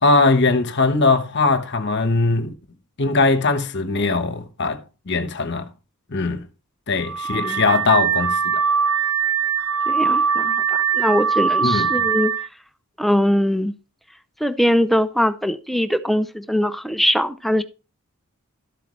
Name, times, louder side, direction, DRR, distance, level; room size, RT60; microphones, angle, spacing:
voice 1, 0.0-2.5 3.0-4.8 5.1-5.7 6.1-6.4 6.9-8.6 11.6-11.9, left 3 dB, 50° left, 1.2 m, -20 dB
Car / Alarm, 7.0-12.5, right 6 dB, 65° right, 0.6 m, -21 dB
voice 2, 7.3-7.6 9.9-12.3 13.0-13.7 14.4-17.6, equal, ahead, 0.5 m, -21 dB
13.0 x 8.1 x 3.3 m
head